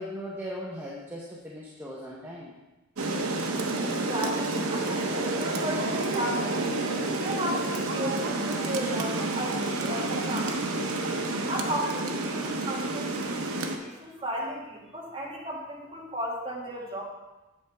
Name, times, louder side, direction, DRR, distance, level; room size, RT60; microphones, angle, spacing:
voice 1, 0.0-2.5, equal, 10° right, -5 dB, 0.9 m, -38 dB
Rain, 3.0-13.8, right 2 dB, 75° right, 0.9 m, -29 dB
voice 2, 3.8-6.8 7.2-11.0 11.5-17.0, equal, 25° right, -4 dB, 1.9 m, -35 dB
8.5 x 7.9 x 3.5 m, 1.1 s
head